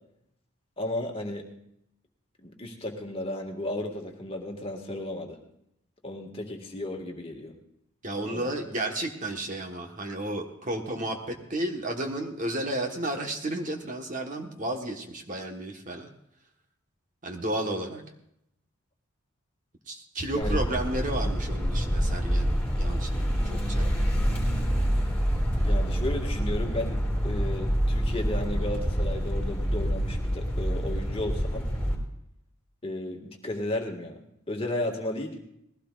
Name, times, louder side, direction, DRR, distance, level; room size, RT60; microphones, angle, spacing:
voice 1, 0.8-1.5 2.4-5.4 6.0-7.5 8.3-8.5 20.3-20.6 25.6-31.7 32.8-35.4, left 1 dB, 25° left, 2 dB, 1.8 m, -34 dB
voice 2, 8.0-16.1 17.2-18.0 19.9-23.9, right 1 dB, 35° right, 3 dB, 1.4 m, -32 dB
sound 1, 20.4-31.9, equal, 5° left, 3.5 m, -27 dB
20.0 x 16.5 x 2.5 m, 0.77 s
head